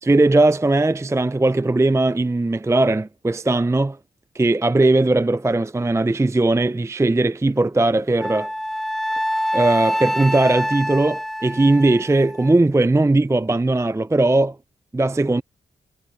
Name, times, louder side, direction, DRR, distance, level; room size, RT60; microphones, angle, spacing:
voice 1, 0.0-4.0 4.3-8.5 9.5-14.6 14.9-15.4, right 2 dB, 15° right, 0.5 m, -18 dB
Wind instrument woodwind instrument, 8.2-12.6, equal, ahead, 1.4 m, -26 dB
cardioid pair, 45°, 20 cm